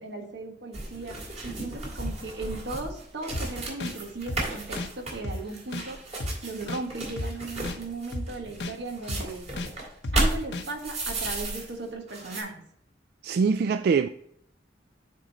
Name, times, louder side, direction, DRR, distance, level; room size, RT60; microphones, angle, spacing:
voice 1, 0.0-6.0 6.4-9.5 10.1-12.6, right 3 dB, 90° right, 1.6 m, -37 dB
sound 1, 0.7-11.8 12.1-12.4, right 2 dB, 40° right, 2.5 m, -34 dB
sound 2, 3.3-3.5 3.8-3.9 4.3-4.4 4.8-4.9 5.2-5.4 5.7-5.9 6.2-6.3 6.7-6.8 7.2-7.3 7.6-7.8 8.1-8.3 8.6-8.7 9.1-9.2 9.6-9.7 10.0-10.2 10.5-10.7, left 1 dB, 75° left, 0.7 m, -32 dB
voice 2, 13.2-14.1, right 5 dB, 60° right, 0.3 m, -23 dB
9.4 x 3.8 x 4.1 m
head